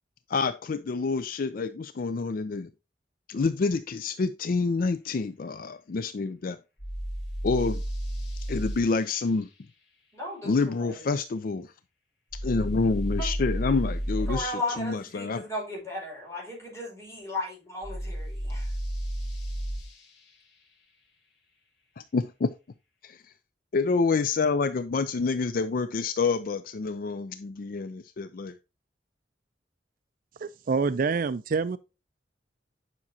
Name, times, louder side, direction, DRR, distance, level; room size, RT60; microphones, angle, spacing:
voice 1, 0.3-2.7 3.3-6.6 7.4-7.8 8.5-9.5 10.4-11.7 12.4-15.4 22.0-22.5 23.0-23.3 23.7-28.6, left 4 dB, 50° left, 0.4 m, -28 dB
sound 1, 6.8-8.8 12.3-14.4 17.8-19.9, equal, 90° left, 2.1 m, -32 dB
voice 2, 10.1-11.0 13.2-13.3 14.3-18.7, left 1 dB, 15° left, 5.3 m, -35 dB
voice 3, 30.4-31.8, right 5 dB, 50° right, 0.4 m, -26 dB
9.8 x 6.0 x 2.8 m
head